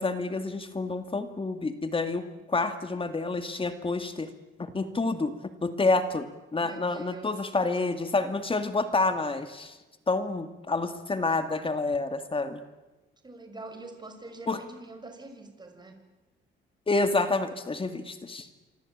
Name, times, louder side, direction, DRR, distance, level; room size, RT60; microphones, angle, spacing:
voice 1, 0.0-4.3 4.6-5.3 5.6-9.8 10.1-12.6 14.5-14.6 16.9-18.5, left 3 dB, 25° left, 9 dB, 2.3 m, -28 dB
voice 2, 6.6-7.4 13.2-16.0, right 2 dB, 20° right, 6 dB, 6.2 m, -44 dB
27.0 x 24.5 x 8.9 m, 1.1 s
cardioid pair, 90°, 20 cm